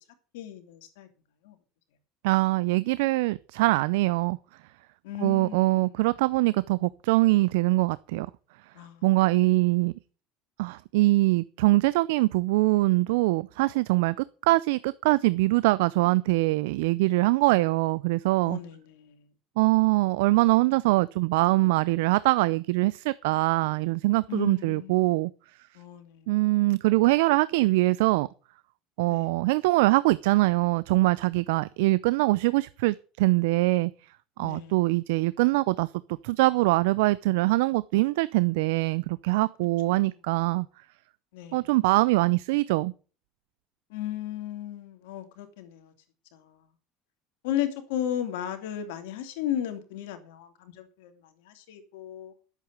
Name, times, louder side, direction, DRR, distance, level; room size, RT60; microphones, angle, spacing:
voice 1, 0.3-1.1 1.4-1.6 5.0-5.9 8.7-9.1 17.5-17.7 18.4-19.3 24.3-25.1 25.7-26.4 29.1-29.3 34.4-34.8 39.8-40.1 41.3-41.7 43.9-45.9 46.3-46.7 47.4-52.3, left 11 dB, 75° left, 2.9 m, -35 dB
voice 2, 2.2-4.4 5.2-8.3 9.0-9.9 10.6-18.6 19.6-25.3 26.3-28.3 29.0-33.9 34.4-35.9 36.2-40.7 41.5-42.9, right 20 dB, 75° right, 0.5 m, -23 dB
11.0 x 8.4 x 8.1 m
hypercardioid pair, 80°, 0 cm